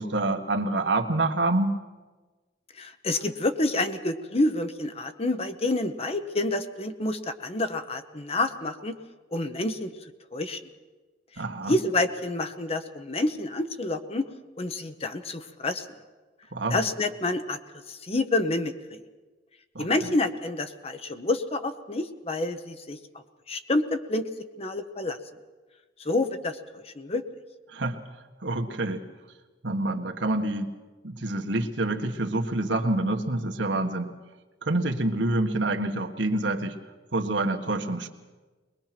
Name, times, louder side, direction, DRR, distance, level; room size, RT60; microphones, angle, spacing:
voice 1, 0.0-1.8 11.4-11.7 16.5-16.8 19.7-20.1 27.7-28.0 28.4-29.0 29.6-30.7 31.0-34.1 34.6-36.7 37.1-38.1, right 2 dB, 85° right, 3 dB, 1.6 m, -27 dB
voice 2, 2.8-9.0 9.3-9.9 10.3-10.6 11.7-14.2 14.6-15.9 16.7-17.6 17.9-19.0 19.8-23.0 23.5-24.3 24.6-25.2 26.0-26.6 26.8-27.2, left 2 dB, 35° left, 9 dB, 1.0 m, -28 dB
21.5 x 21.5 x 6.0 m, 1.3 s
head